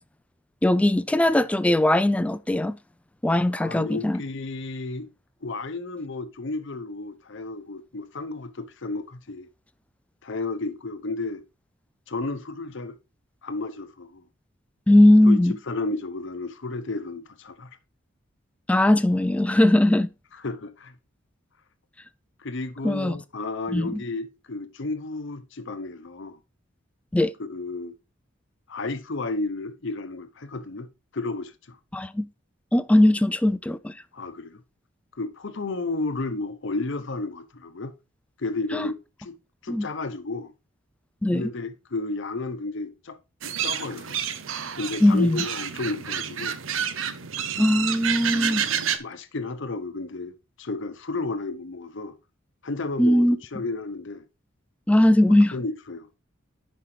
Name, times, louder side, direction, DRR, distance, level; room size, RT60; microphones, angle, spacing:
voice 1, 0.6-2.8 3.2-4.2 14.9-15.6 18.7-20.1 22.8-23.2 23.7-24.0 27.1-27.3 31.9-32.3 32.7-33.9 38.7-38.9 39.7-39.9 41.2-41.5 45.0-45.4 47.6-48.6 53.0-53.4 54.9-55.5, left 1 dB, 5° left, 0.3 m, -19 dB
voice 2, 3.5-5.1 5.4-9.5 10.2-11.4 12.1-13.0 13.4-14.2 15.2-15.4 15.7-17.7 20.3-21.0 22.4-26.4 27.4-28.0 28.7-30.9 31.1-31.8 34.1-34.6 35.1-37.9 38.4-38.9 39.2-39.4 39.6-40.5 41.3-43.2 43.6-44.2 44.7-46.6 49.0-52.1 52.6-54.2 55.3-56.2, left 3 dB, 65° left, 0.9 m, -32 dB
sound 1, 43.4-49.0, right 8 dB, 75° right, 0.7 m, -29 dB
9.8 x 5.3 x 3.3 m
head